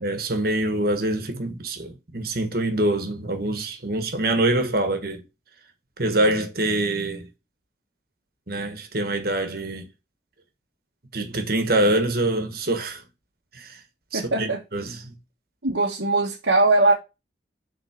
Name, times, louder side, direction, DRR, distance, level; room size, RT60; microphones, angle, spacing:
voice 1, 0.0-5.2 6.0-7.3 8.5-9.9 11.1-13.0 13.5-13.8 14.1-15.1, right 1 dB, 55° right, 1.4 m, -25 dB
voice 2, 14.1-14.6 15.6-16.9, right 2 dB, 90° right, 1.4 m, -20 dB
6.5 x 3.9 x 5.8 m
head